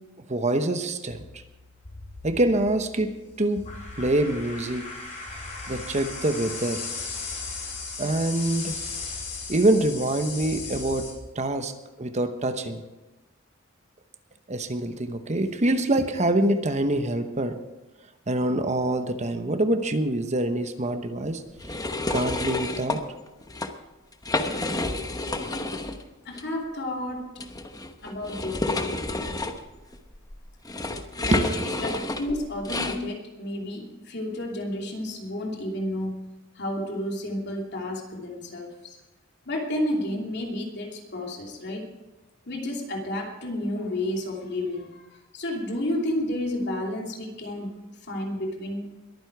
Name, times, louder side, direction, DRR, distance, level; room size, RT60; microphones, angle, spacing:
voice 1, 0.3-1.3 2.2-3.6 4.0-4.9 5.7-6.9 8.0-8.8 9.5-11.1 11.3-11.7 12.0-12.8 14.5-17.6 18.3-21.4 22.1-23.0 31.3-31.7, right 1 dB, 35° right, 8 dB, 0.9 m, -25 dB
sound 1, 1.1-11.1, left 4 dB, 40° left, 4.9 m, -37 dB
sound 2, 21.6-23.0 23.4-23.7 24.1-26.0 26.3-26.4 27.4-33.0, left 2 dB, 20° left, 1.0 m, -30 dB
voice 2, 26.2-27.3 28.0-29.0 31.2-36.3 36.5-39.0 39.5-41.8 42.5-47.8 48.1-48.9, left 1 dB, 60° left, 1 dB, 2.9 m, -31 dB
21.5 x 9.7 x 4.7 m, 1.1 s
head